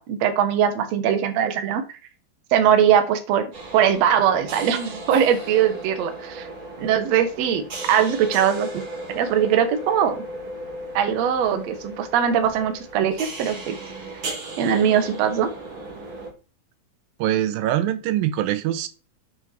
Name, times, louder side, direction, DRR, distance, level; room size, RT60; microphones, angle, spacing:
voice 1, 0.0-1.8 2.5-3.5 3.7-6.5 6.8-8.7 9.1-10.2 10.9-13.8 14.6-15.5, right 8 dB, 65° right, 9 dB, 1.8 m, -21 dB
sound 1, 3.5-16.3, right 2 dB, 40° right, 2.5 m, -36 dB
voice 2, 17.2-18.9, right 12 dB, 80° right, 12 dB, 2.3 m, -23 dB
7.3 x 6.3 x 4.3 m, 0.35 s
omnidirectional pair, 4.2 m